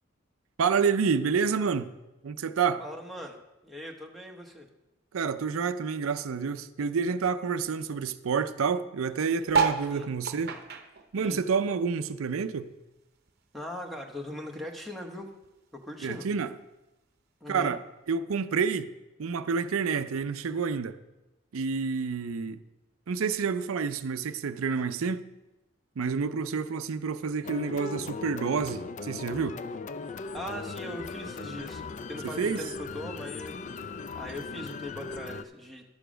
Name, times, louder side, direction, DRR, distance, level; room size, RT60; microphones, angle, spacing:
voice 1, 0.6-1.9 2.2-2.8 5.1-10.6 11.1-12.7 16.0-16.5 17.5-17.8 18.1-18.9 19.2-21.0 21.5-22.6 23.1-25.2 26.0-29.6 32.2-32.6, right 5 dB, 80° right, 0.5 m, -28 dB
voice 2, 2.8-3.4 3.6-4.7 9.9-10.1 11.2-11.4 13.5-15.3 15.7-16.3 17.4-17.7 30.3-31.8 32.1-35.8, left 1 dB, ahead, 0.9 m, -40 dB
sound 1, 9.5-12.2 12.6-14.1 14.6-14.7 14.9-15.0 15.1-15.5 16.3-16.4, right 5 dB, 50° right, 0.8 m, -31 dB
sound 2, 27.4-35.4, left 4 dB, 35° left, 0.4 m, -38 dB
11.5 x 6.9 x 5.0 m
head